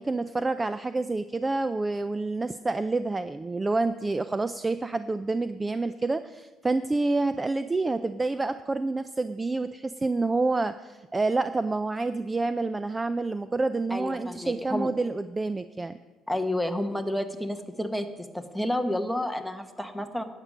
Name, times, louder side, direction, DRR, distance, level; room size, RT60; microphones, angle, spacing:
voice 1, 0.0-16.0, right 3 dB, 15° right, 12 dB, 0.3 m, -28 dB
voice 2, 13.9-14.9 16.3-20.2, left 1 dB, ahead, 8 dB, 1.0 m, -30 dB
11.5 x 9.0 x 6.2 m, 1.3 s
cardioid pair, 130°, 0 cm